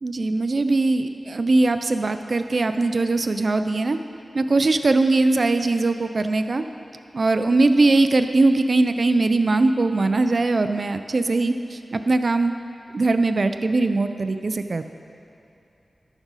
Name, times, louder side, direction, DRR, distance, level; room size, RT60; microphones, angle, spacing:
voice 1, 0.0-4.0 4.3-6.6 7.1-12.5 12.9-14.9, right 2 dB, 55° right, 9 dB, 0.4 m, -21 dB
12.5 x 6.1 x 4.1 m, 2.7 s
wide cardioid pair, 60°, 0 cm